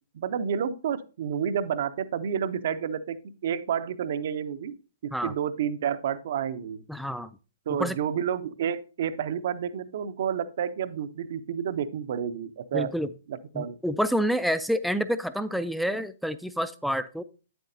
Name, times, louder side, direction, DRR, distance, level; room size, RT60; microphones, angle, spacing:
voice 1, 0.1-3.2 3.4-4.7 5.0-6.8 7.7-12.9 13.3-13.8, right 8 dB, 55° right, 14 dB, 0.6 m, -30 dB
voice 2, 6.9-7.3 7.7-8.0 12.7-13.1 13.5-17.2, equal, ahead, 13 dB, 0.4 m, -28 dB
8.3 x 7.9 x 2.6 m, 0.34 s
figure-of-eight pair, 125°, 0 cm